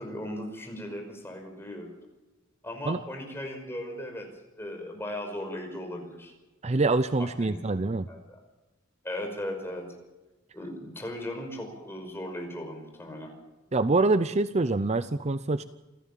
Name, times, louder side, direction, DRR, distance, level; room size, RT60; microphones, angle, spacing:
voice 1, 0.0-1.9 2.6-4.3 4.6-6.3 7.4-8.4 9.0-9.9 10.5-13.3, left 1 dB, 10° left, 3 dB, 5.6 m, -37 dB
voice 2, 6.6-8.1 13.7-15.6, right 3 dB, 35° right, 13 dB, 0.6 m, -25 dB
28.0 x 15.0 x 7.5 m, 1.1 s
head